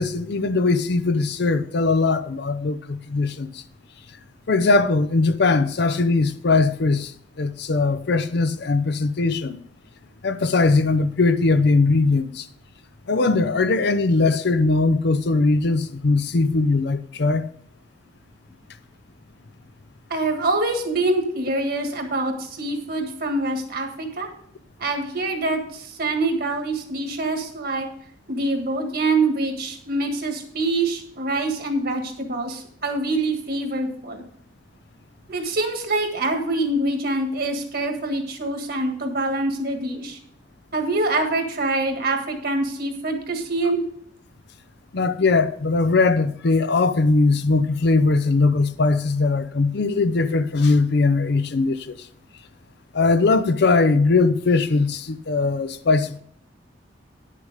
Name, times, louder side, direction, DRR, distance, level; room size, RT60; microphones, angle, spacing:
voice 1, 0.0-3.5 4.5-7.1 7.4-9.6 10.2-12.4 13.1-17.4 44.9-51.9 52.9-56.2, left 3 dB, 60° left, 0.6 m, -20 dB
voice 2, 20.1-24.3 24.8-27.9 28.3-34.2 35.3-40.2 40.7-43.8, right 2 dB, 55° right, 1.7 m, -25 dB
10.0 x 6.6 x 4.9 m
head